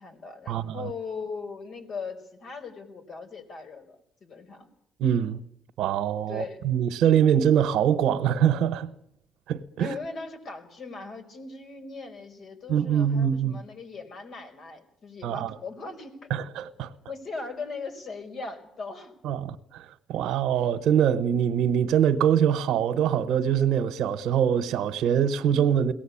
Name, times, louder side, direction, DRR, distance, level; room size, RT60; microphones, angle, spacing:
voice 1, 0.0-4.7 6.3-6.6 9.8-16.2 17.1-19.1, left 4 dB, 60° left, 5.1 m, -39 dB
voice 2, 5.0-5.4 5.8-8.9 9.5-9.9 12.7-13.6 15.2-15.5 16.3-16.9 19.2-25.9, right 9 dB, 85° right, 1.0 m, -24 dB
22.5 x 18.0 x 8.6 m
cardioid pair, 90°, 0 cm